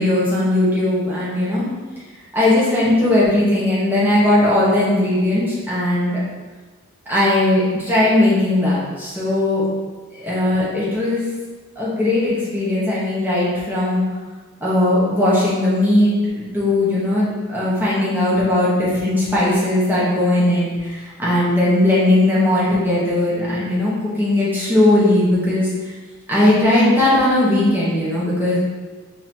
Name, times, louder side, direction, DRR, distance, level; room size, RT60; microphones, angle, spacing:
voice 1, 0.0-1.7 2.3-6.2 7.1-9.6 10.1-11.2 11.8-14.0 14.6-16.2 16.5-25.7 26.3-28.6, left 1 dB, 10° right, -9 dB, 1.2 m, -18 dB
4.2 x 4.1 x 2.9 m, 1.3 s
head